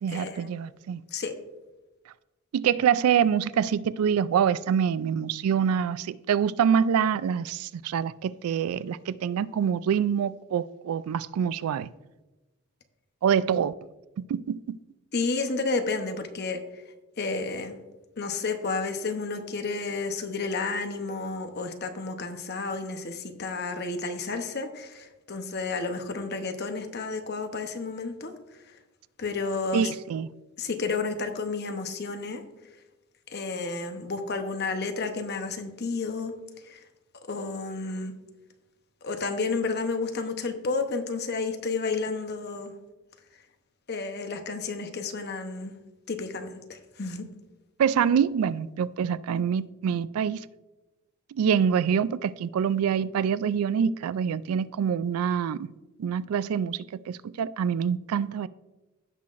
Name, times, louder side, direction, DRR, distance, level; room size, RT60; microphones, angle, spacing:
voice 1, 0.0-1.0 2.5-11.9 13.2-13.7 14.2-14.8 29.7-30.3 47.8-50.5 51.3-55.7 56.0-58.5, right 7 dB, 85° right, 0.3 m, -25 dB
voice 2, 15.1-16.6 17.2-17.8 18.2-28.3 29.2-29.9 30.6-32.4 33.3-36.3 36.7-36.8 37.3-38.1 39.0-42.7 43.9-45.7 46.1-47.3, left 4 dB, 50° left, 0.8 m, -31 dB
15.5 x 5.7 x 2.5 m
head